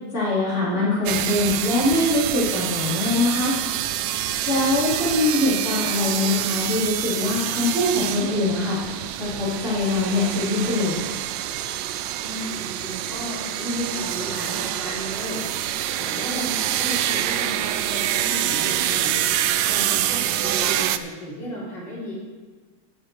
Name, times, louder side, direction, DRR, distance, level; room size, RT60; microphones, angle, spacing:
voice 1, 0.1-3.6 4.5-11.0, left 2 dB, 40° left, -9 dB, 3.9 m, -23 dB
sound 1, 1.1-21.0, right 12 dB, 80° right, 1.3 m, -26 dB
voice 2, 12.2-15.4 16.0-19.1 19.6-22.1, equal, 70° left, -9 dB, 4.8 m, -34 dB
18.0 x 6.5 x 4.7 m, 1.4 s
omnidirectional pair, 2.0 m